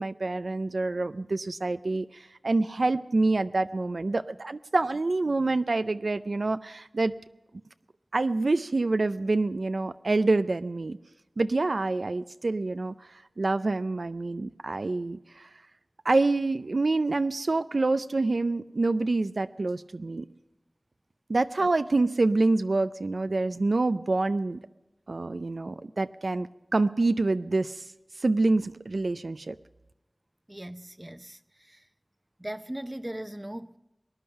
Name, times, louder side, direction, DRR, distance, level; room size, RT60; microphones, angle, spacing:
voice 1, 0.0-7.1 8.1-11.0 11.4-15.5 16.0-20.3 21.3-24.6 25.1-26.5 26.7-27.8 28.2-29.6, right 2 dB, 75° right, 0.4 m, -27 dB
voice 2, 30.5-31.9 32.4-33.8, right 1 dB, 20° right, 0.7 m, -39 dB
19.5 x 10.5 x 5.6 m
wide cardioid pair, 40°, 0 cm